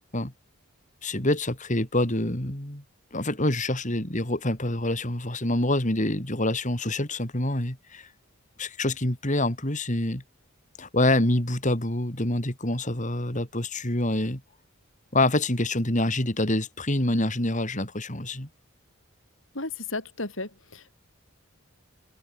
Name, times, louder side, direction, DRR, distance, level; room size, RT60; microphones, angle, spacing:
voice 1, 1.0-2.8 3.1-8.1 8.6-10.2 10.8-14.4 15.1-18.5, left 1 dB, 35° left, 4.2 m, -26 dB
voice 2, 19.6-20.9, left 3 dB, 65° left, 5.2 m, -34 dB
open air
head